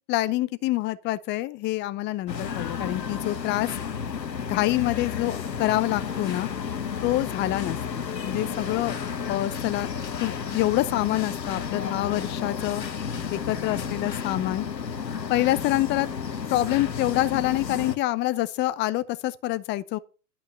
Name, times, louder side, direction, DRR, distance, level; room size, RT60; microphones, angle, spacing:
voice 1, 0.1-3.7 4.4-6.5 7.0-9.0 9.2-9.9 10.2-12.8 13.3-14.7 15.3-16.1 16.5-20.0, left 16 dB, 25° left, 0.6 m, -26 dB
sound 1, 2.3-18.0, left 6 dB, 90° left, 1.3 m, -32 dB
12.0 x 5.4 x 7.9 m
hypercardioid pair, 110°, 49 cm